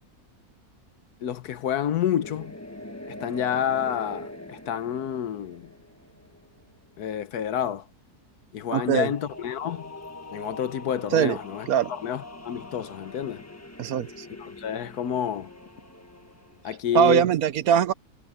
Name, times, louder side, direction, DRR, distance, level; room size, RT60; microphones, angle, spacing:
voice 1, 1.2-2.6 3.2-5.7 7.0-7.9 8.5-9.8 10.3-13.5 14.4-15.5 16.6-17.2, left 9 dB, 85° left, 1.5 m, -29 dB
sound 1, 2.2-6.8 8.8-16.7, left 1 dB, 10° left, 1.1 m, -43 dB
voice 2, 8.7-9.1 11.1-11.4 11.7-11.9 13.8-14.2 16.9-17.9, right 9 dB, 75° right, 1.3 m, -21 dB
omnidirectional pair, 1.6 m